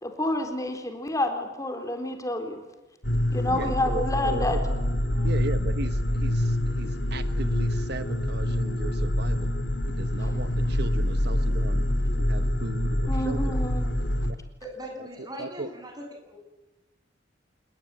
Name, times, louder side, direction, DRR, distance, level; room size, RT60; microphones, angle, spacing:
voice 1, 0.0-2.6 3.3-4.6 5.1-5.4 10.2-10.3 13.1-14.0, left 1 dB, 20° left, 5 dB, 3.9 m, -29 dB
sound 1, 3.0-14.3, left 1 dB, 70° left, 2.7 m, -26 dB
voice 2, 3.5-4.6 5.2-9.5 9.9-11.8 12.2-13.6 15.4-15.7, right 2 dB, 60° right, 11 dB, 1.2 m, -37 dB
voice 3, 14.6-16.4, equal, 20° right, 3 dB, 7.9 m, -40 dB
28.0 x 20.5 x 10.0 m, 1.1 s
head